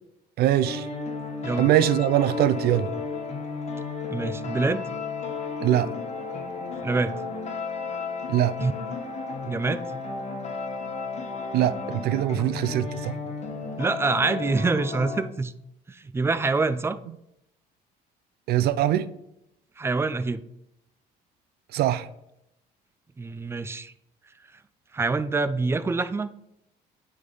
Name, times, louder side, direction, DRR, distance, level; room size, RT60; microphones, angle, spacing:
voice 1, 0.4-0.9 1.6-2.9 5.6-5.9 8.3-8.5 11.5-13.2 18.5-19.1 21.7-22.1, right 12 dB, 70° right, 0.5 m, -22 dB
sound 1, 0.6-15.2, left 4 dB, 40° left, 1.2 m, -33 dB
voice 2, 4.1-4.9 6.8-7.1 8.6-8.7 9.5-9.8 13.8-15.5 15.9-17.0 19.8-20.4 23.2-23.9 24.9-26.3, right 3 dB, 15° right, 0.4 m, -25 dB
9.5 x 3.6 x 3.9 m
cardioid pair, 110°, 17 cm